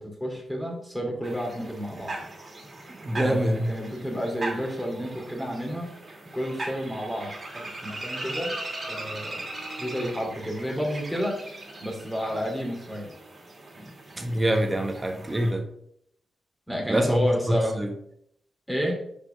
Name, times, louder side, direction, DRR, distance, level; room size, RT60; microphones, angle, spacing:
voice 1, 0.0-2.1 3.1-5.9 6.3-8.5 8.9-9.4 9.8-13.1 16.7-17.7 18.7-19.0, equal, ahead, 2.9 m, -30 dB
sound 1, 1.2-15.5, right 2 dB, 40° right, 2.4 m, -39 dB
voice 2, 3.0-3.7 14.2-15.7 16.9-17.9, right 1 dB, 25° right, 1.2 m, -25 dB
5.5 x 5.0 x 5.8 m
cardioid pair, 60°, 0 cm